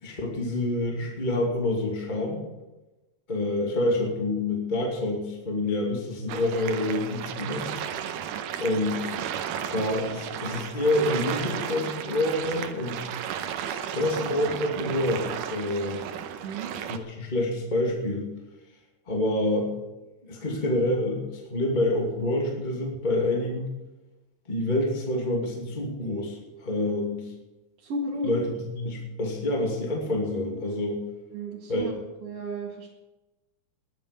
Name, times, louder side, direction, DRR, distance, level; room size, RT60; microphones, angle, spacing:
voice 1, 0.0-2.4 3.3-7.7 8.6-9.2 9.7-13.1 13.9-16.0 16.8-18.3 19.1-19.7 20.2-23.7 24.5-27.3 28.2-31.0 31.7-31.9, left 1 dB, 15° left, -1 dB, 2.3 m, -27 dB
sound 1, 6.3-17.0, right 9 dB, 90° right, 2.5 m, -34 dB
voice 2, 16.4-16.7 27.8-28.3 31.3-31.9 32.2-32.9, right 2 dB, 50° right, -4 dB, 2.7 m, -33 dB
20.5 x 9.3 x 5.2 m, 1.1 s
omnidirectional pair, 3.6 m